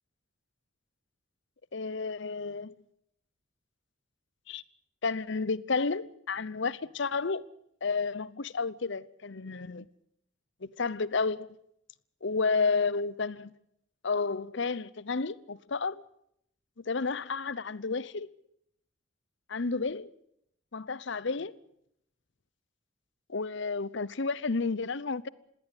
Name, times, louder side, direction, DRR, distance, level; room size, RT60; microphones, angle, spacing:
voice 1, 1.7-2.7 4.5-4.6 5.0-7.4 7.8-9.9 10.6-11.5 12.2-13.5 14.0-16.0 16.8-18.3 19.5-20.1 20.7-21.5 23.3-25.3, left 4 dB, 60° left, 0.8 m, -31 dB
20.0 x 17.5 x 9.8 m
head